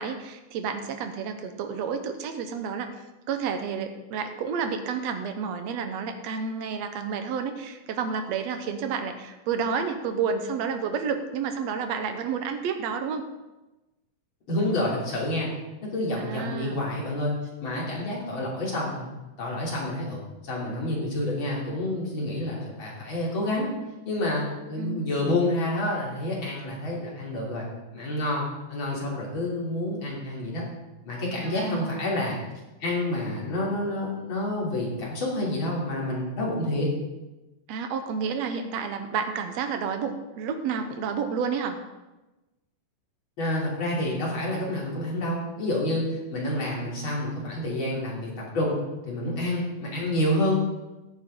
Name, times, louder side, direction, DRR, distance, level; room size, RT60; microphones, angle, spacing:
voice 1, 0.0-2.9 3.3-13.2 16.2-16.8 24.8-25.3 31.4-32.1 37.7-41.8, right 6 dB, 65° right, 7 dB, 1.9 m, -30 dB
voice 2, 14.5-15.5 15.8-17.3 17.6-19.1 19.4-23.7 24.1-27.7 27.9-30.6 31.0-32.4 32.8-36.9 43.4-48.8 49.1-50.5, left 1 dB, 40° left, -5 dB, 3.8 m, -28 dB
15.5 x 9.4 x 3.8 m, 1.1 s
omnidirectional pair, 3.7 m